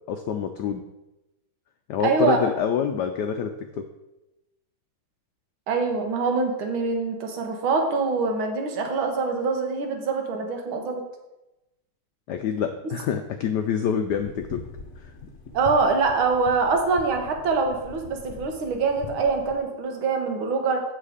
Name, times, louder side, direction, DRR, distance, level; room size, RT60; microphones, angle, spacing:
voice 1, 0.1-0.8 1.9-3.9 12.3-14.6 15.0-15.1, left 8 dB, 75° left, 7 dB, 1.0 m, -26 dB
voice 2, 2.0-2.4 5.7-11.0 15.5-20.8, right 4 dB, 75° right, 3 dB, 1.9 m, -24 dB
sound 1, 14.1-19.6, left 3 dB, 50° left, 1.0 m, -42 dB
7.6 x 6.4 x 4.9 m, 0.98 s
omnidirectional pair, 2.3 m